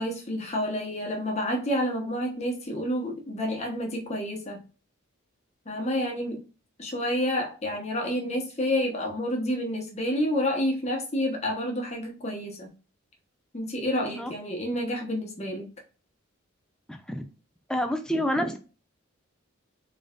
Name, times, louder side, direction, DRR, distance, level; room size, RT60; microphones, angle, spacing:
voice 1, 0.0-4.6 5.7-6.4 6.8-12.7 13.5-15.7, equal, 30° left, 1.1 m, -29 dB
voice 2, 13.9-14.3 16.9-17.2 17.7-18.6, equal, 5° left, 0.4 m, -28 dB
3.9 x 3.6 x 2.4 m
head